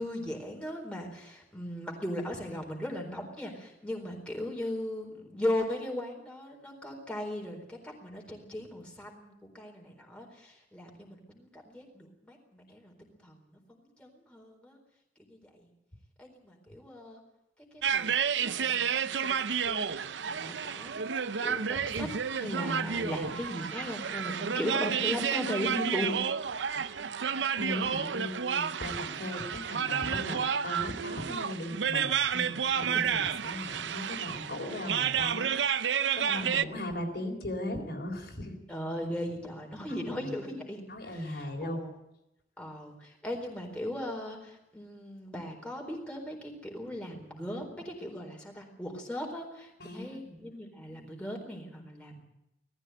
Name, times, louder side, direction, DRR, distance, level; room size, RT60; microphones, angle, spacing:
voice 1, 0.0-14.8 15.3-15.7 16.2-17.2 17.7-26.2 32.3-33.1 36.3-36.7 38.7-40.8 41.1-41.9 42.6-52.2, left 1 dB, 5° left, 0 dB, 4.2 m, -38 dB
sound 1, 17.8-36.6, right 7 dB, 85° right, 0.6 m, -31 dB
voice 2, 27.6-32.2 32.5-38.5 39.9-40.4 40.9-41.9 49.8-50.5 50.9-51.1, left 1 dB, 60° left, 2 dB, 3.8 m, -38 dB
19.0 x 15.0 x 9.2 m, 0.86 s
head